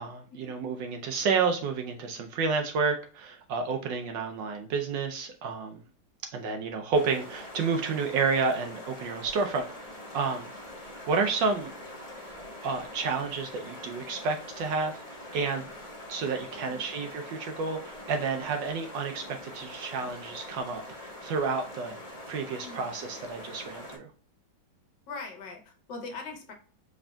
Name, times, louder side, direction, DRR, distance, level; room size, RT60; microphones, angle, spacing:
voice 1, 0.0-5.8 6.3-9.7 10.1-10.5 11.1-11.7 12.4-14.9 15.3-15.7 16.1-22.0 22.3-24.1, right 4 dB, 70° right, 5 dB, 1.2 m, -30 dB
sound 1, 6.9-24.0, left 1 dB, 25° left, 1.0 m, -44 dB
voice 2, 16.6-17.0 22.6-22.9 25.1-26.5, left 3 dB, 65° left, 2 dB, 1.5 m, -41 dB
4.9 x 3.4 x 2.2 m, 0.41 s
omnidirectional pair, 2.3 m